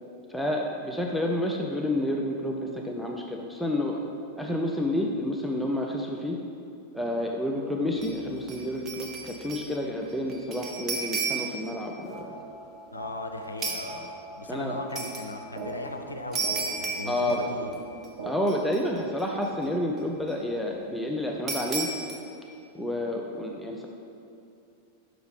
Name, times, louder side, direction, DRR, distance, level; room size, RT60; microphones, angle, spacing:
voice 1, 0.3-4.0 4.4-6.4 6.9-12.3 14.5-14.8 17.1-17.4 18.2-21.9 22.7-23.9, left 1 dB, ahead, -1 dB, 0.5 m, -29 dB
sound 1, 8.0-8.2 8.5-9.8 10.0-11.7 13.6-13.9 15.0-15.3 16.3-17.8 18.0-18.1 18.5-19.2 21.5-22.2, right 4 dB, 25° right, 1.0 m, -33 dB
sound 2, 11.6-18.6, right 2 dB, 55° right, 0.9 m, -42 dB
voice 2, 12.9-14.1 14.4-17.8, left 2 dB, 80° left, 5 dB, 0.5 m, -37 dB
6.3 x 4.8 x 4.9 m, 2.6 s
figure-of-eight pair, 90°, 0 cm